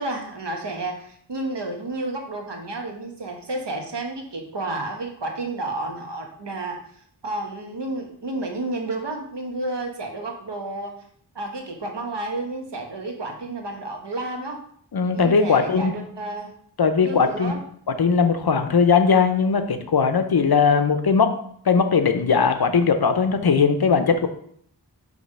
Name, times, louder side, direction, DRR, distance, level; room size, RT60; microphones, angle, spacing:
voice 1, 0.0-6.8 7.2-10.9 11.3-14.6 15.1-16.5 17.0-17.6, right 2 dB, 80° right, 2 dB, 1.1 m, -31 dB
voice 2, 14.9-15.9 16.8-17.5 18.0-21.4 21.6-24.3, left 5 dB, 65° left, 8 dB, 0.7 m, -19 dB
5.2 x 3.3 x 5.4 m, 0.64 s
wide cardioid pair, 50°, 41 cm